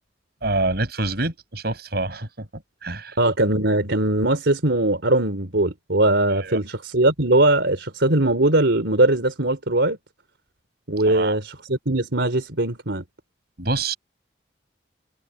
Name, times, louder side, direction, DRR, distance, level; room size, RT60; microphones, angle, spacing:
voice 1, 0.4-3.2 6.3-6.6 11.0-11.4 13.6-14.0, right 2 dB, 60° right, 6.5 m, -27 dB
voice 2, 3.2-10.0 10.9-13.0, right 2 dB, 75° right, 3.6 m, -20 dB
head